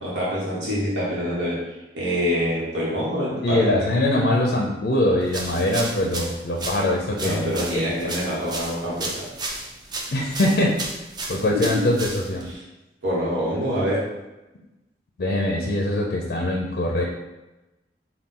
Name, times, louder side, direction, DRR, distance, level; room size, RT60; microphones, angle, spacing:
voice 1, 0.0-1.6 1.9-3.9 7.2-9.2 11.5-11.9 12.5-12.6 13.0-14.0, equal, 85° right, -7 dB, 1.1 m, -26 dB
voice 2, 3.4-7.8 10.1-10.8 11.3-12.5 15.2-17.0, left 1 dB, 60° left, -1 dB, 0.5 m, -22 dB
sound 1, 5.3-12.5, right 2 dB, 25° right, 0.4 m, -34 dB
4.1 x 2.3 x 3.7 m, 1.0 s
head